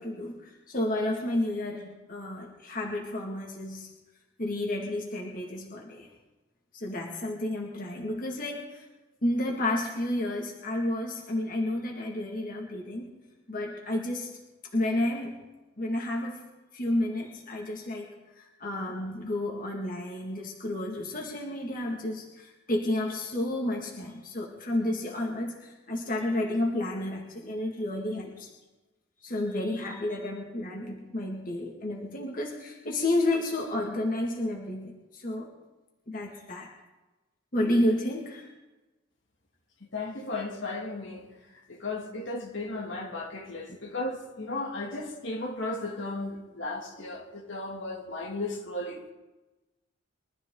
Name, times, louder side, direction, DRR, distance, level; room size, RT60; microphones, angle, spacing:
voice 1, 0.0-3.9 4.4-6.1 6.7-8.9 9.2-13.2 13.5-14.3 14.7-15.4 15.8-16.4 16.7-18.1 18.4-28.5 29.2-35.5 36.1-36.7 37.5-38.5, left 1 dB, 45° left, 2.1 m, -31 dB
voice 2, 39.9-41.3 41.7-49.1, left 2 dB, 70° left, 2.5 m, -35 dB
23.5 x 13.5 x 3.9 m
head